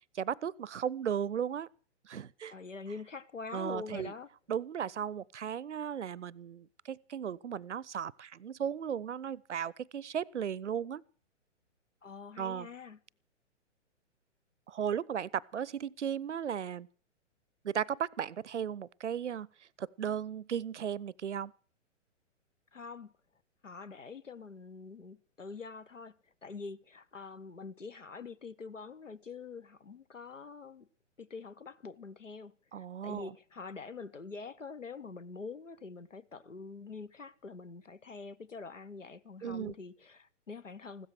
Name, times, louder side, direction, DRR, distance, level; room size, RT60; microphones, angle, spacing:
voice 1, 0.1-1.7 2.0-2.5 3.5-4.1 4.5-11.0 12.4-12.7 14.7-16.9 17.6-19.5 19.8-21.5 32.7-33.3 39.4-39.7, right 8 dB, 70° right, 0.6 m, -36 dB
voice 2, 2.5-4.3 12.0-13.0 22.7-23.1 23.6-30.9 31.2-41.1, left 4 dB, 80° left, 1.0 m, -45 dB
15.5 x 13.0 x 6.4 m
figure-of-eight pair, 120°, 37 cm